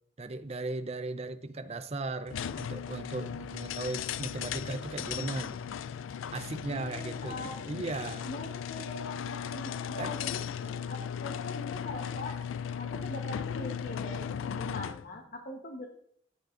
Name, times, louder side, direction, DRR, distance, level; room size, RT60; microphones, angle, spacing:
voice 1, 0.2-5.6 6.3-8.3 10.0-10.2, right 2 dB, 30° right, 0.6 m, -37 dB
sound 1, 2.3-15.1, left 8 dB, 90° left, 0.4 m, -37 dB
voice 2, 6.7-7.6 8.2-10.4 10.9-12.4 12.8-15.9, left 1 dB, 45° left, 1.1 m, -42 dB
14.5 x 9.2 x 2.6 m
head